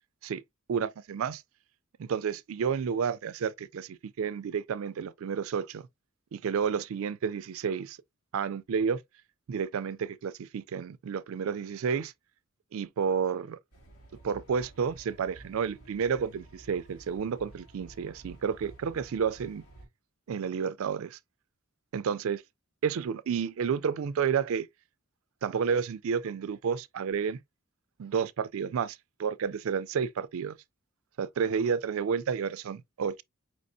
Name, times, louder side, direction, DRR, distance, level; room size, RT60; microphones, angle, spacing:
voice 1, 0.7-1.4 2.0-5.8 6.3-8.0 8.3-9.0 9.5-12.1 12.7-13.6 14.2-19.6 20.3-21.2 21.9-22.4 22.8-24.7 25.4-27.4 28.0-30.6 31.2-33.2, right 6 dB, 70° right, 0.4 m, -31 dB
sound 1, 13.7-19.9, right 2 dB, 85° left, 2.2 m, -52 dB
5.3 x 2.9 x 2.6 m
head